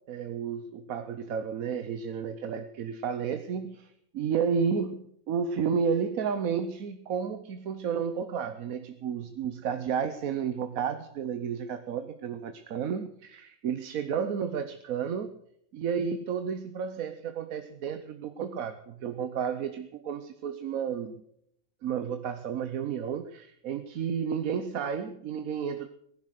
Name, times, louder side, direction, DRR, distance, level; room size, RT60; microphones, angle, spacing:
voice 1, 0.1-15.4 15.7-21.2 21.8-25.9, right 7 dB, 90° right, 9 dB, 1.3 m, -32 dB
19.0 x 11.0 x 6.5 m, 0.73 s
omnidirectional pair, 1.4 m